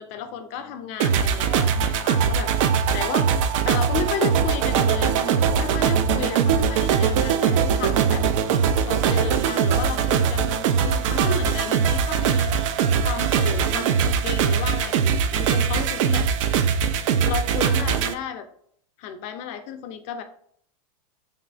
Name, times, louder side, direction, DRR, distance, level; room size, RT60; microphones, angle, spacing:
voice 1, 0.0-2.5 2.9-3.3 3.6-8.3 8.6-12.5 13.0-16.3 17.2-18.5 19.0-20.2, left 7 dB, 40° left, 8 dB, 0.4 m, -33 dB
sound 1, 1.0-18.1, right 7 dB, 60° right, 0.4 m, -21 dB
3.1 x 3.0 x 2.5 m, 0.64 s
hypercardioid pair, 125°, 19 cm